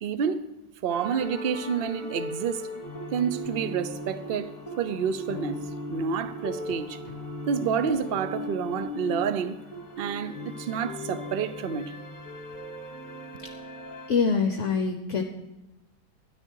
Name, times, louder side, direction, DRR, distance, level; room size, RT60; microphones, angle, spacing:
voice 1, 0.0-0.4 0.8-2.7 3.1-4.5 4.8-5.6 5.9-7.0 7.5-9.6 10.0-11.9, right 7 dB, 85° right, 0.5 m, -29 dB
sound 1, 0.9-14.1, left 1 dB, 25° left, 1.6 m, -38 dB
voice 2, 14.1-15.2, left 5 dB, 55° left, 1.0 m, -24 dB
13.5 x 10.5 x 4.6 m
omnidirectional pair, 1.9 m